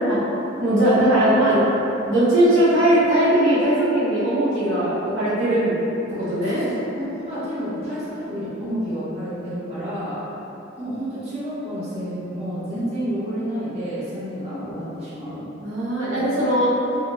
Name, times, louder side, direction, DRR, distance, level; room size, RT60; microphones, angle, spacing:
voice 1, 0.6-1.6 2.0-5.7 6.2-6.6 15.6-16.7, right 1 dB, 80° right, -10 dB, 0.8 m, -19 dB
voice 2, 6.1-10.2 10.8-15.5 16.9-17.0, equal, 35° right, -13 dB, 1.0 m, -30 dB
2.7 x 2.4 x 3.0 m, 2.9 s
head